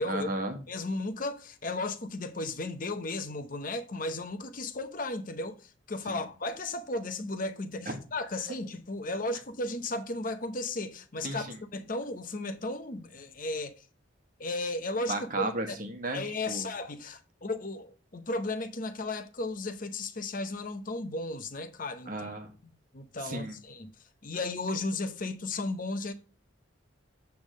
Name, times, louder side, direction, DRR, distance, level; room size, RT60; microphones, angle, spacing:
voice 1, 0.1-0.6 6.1-6.2 7.9-8.0 11.2-11.6 15.1-16.2 16.5-16.7 22.1-22.5 23.2-23.6, right 2 dB, 40° right, 1.3 m, -34 dB
voice 2, 0.7-13.8 14.4-15.8 16.1-22.1 22.6-23.9 24.2-26.1, left 2 dB, 40° left, 0.8 m, -35 dB
8.5 x 3.5 x 6.3 m
head